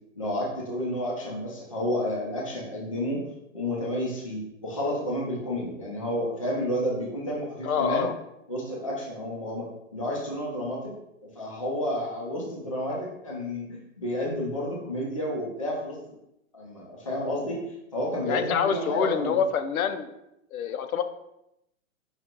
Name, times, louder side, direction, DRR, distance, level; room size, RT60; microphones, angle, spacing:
voice 1, 0.2-3.2 3.5-8.0 8.5-10.9 11.4-16.2 16.5-17.6 17.9-19.4, equal, 25° left, -3 dB, 0.3 m, -31 dB
voice 2, 7.6-8.1 18.2-20.1 20.5-21.0, left 7 dB, 80° left, 9 dB, 0.6 m, -26 dB
5.0 x 2.4 x 4.3 m, 0.84 s
hypercardioid pair, 175°, 41 cm